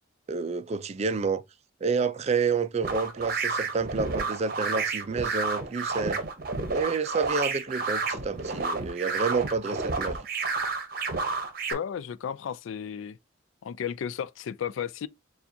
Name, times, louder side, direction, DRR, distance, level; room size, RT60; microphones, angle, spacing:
voice 1, 0.3-1.4 1.8-6.2 6.7-10.2, right 5 dB, 30° right, 0.3 m, -29 dB
sound 1, 2.8-11.7, right 4 dB, 50° right, 0.8 m, -30 dB
voice 2, 11.7-13.2 13.6-15.1, left 8 dB, 75° left, 0.3 m, -33 dB
7.0 x 2.3 x 2.6 m
head